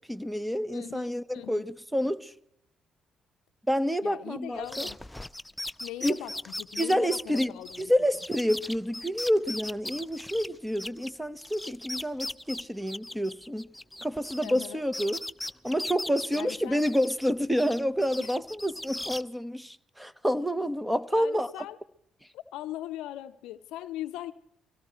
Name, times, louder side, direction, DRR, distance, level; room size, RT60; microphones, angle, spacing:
voice 1, 0.1-2.3 3.7-4.9 6.0-6.2 6.8-7.5 7.8-13.7 14.0-15.2 15.6-21.5, equal, 5° right, 1.0 m, -28 dB
voice 2, 0.7-1.7 4.0-5.0 5.8-7.9 14.4-14.8 16.3-16.8 18.2-18.4 21.1-21.8 22.3-24.3, left 13 dB, 80° left, 0.5 m, -40 dB
sound 1, 4.6-11.1 11.4-14.7 14.9-17.3 17.5-19.2, left 1 dB, 10° left, 0.5 m, -38 dB
24.0 x 17.5 x 3.1 m
supercardioid pair, 55°, 0 cm